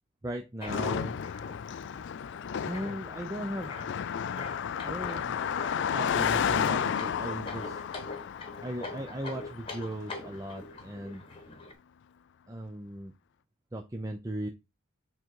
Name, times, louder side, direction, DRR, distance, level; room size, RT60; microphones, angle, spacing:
voice 1, 0.2-1.2 2.7-4.6 4.8-7.8 8.6-11.2 12.5-13.1 13.7-14.5, right 1 dB, 15° right, 3 dB, 0.6 m, -38 dB
sound 1, 0.6-11.7, left 2 dB, 25° left, 1.2 m, -44 dB
Car passing by, 0.7-10.2, left 8 dB, 55° left, 0.3 m, -32 dB
7.6 x 3.8 x 4.6 m, 0.25 s
head